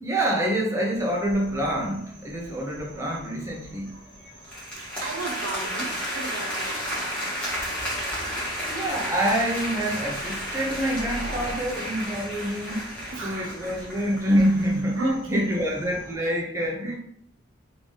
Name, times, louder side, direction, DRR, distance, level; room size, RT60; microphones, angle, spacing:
voice 1, 0.0-3.9 8.7-17.0, equal, 15° right, -2 dB, 0.8 m, -26 dB
sound 1, 0.9-16.2, equal, 55° right, 1.6 m, -45 dB
sound 2, 4.4-14.8, equal, 5° left, 1.6 m, -32 dB
voice 2, 4.8-6.8 13.1-13.6 14.9-15.7 16.2-16.3, right 3 dB, 90° right, 3 dB, 0.9 m, -35 dB
3.6 x 3.4 x 3.9 m, 0.65 s
head